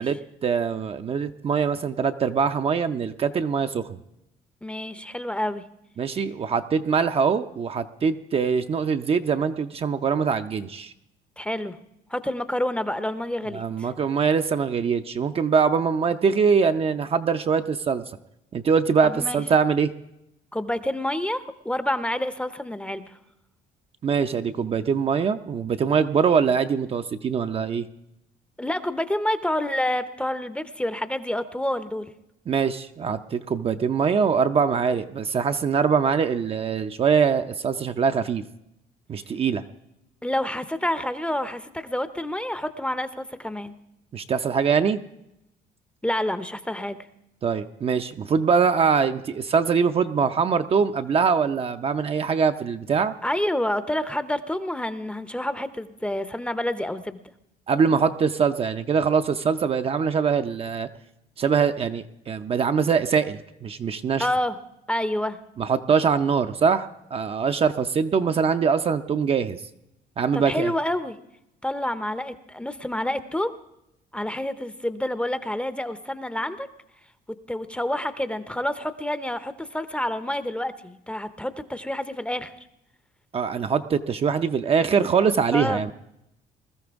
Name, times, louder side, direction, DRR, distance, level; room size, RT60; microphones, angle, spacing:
voice 1, 0.0-3.9 6.0-10.9 13.5-18.0 18.5-19.9 24.0-27.9 32.5-38.4 39.1-39.6 44.1-45.0 47.4-53.1 57.7-60.9 61.4-64.3 65.6-69.6 70.2-70.7 83.3-85.9, right 6 dB, 35° right, 8 dB, 0.5 m, -23 dB
voice 2, 4.6-5.6 11.4-11.8 12.1-13.9 19.0-19.4 20.5-23.2 28.6-32.1 40.2-43.7 46.0-47.0 53.2-57.2 64.2-64.6 64.9-65.4 70.3-71.2 71.6-73.5 74.1-76.7 77.5-82.5 85.5-85.8, left 1 dB, 5° left, 12 dB, 0.6 m, -28 dB
21.0 x 13.0 x 3.5 m, 0.85 s
cardioid pair, 110°, 17 cm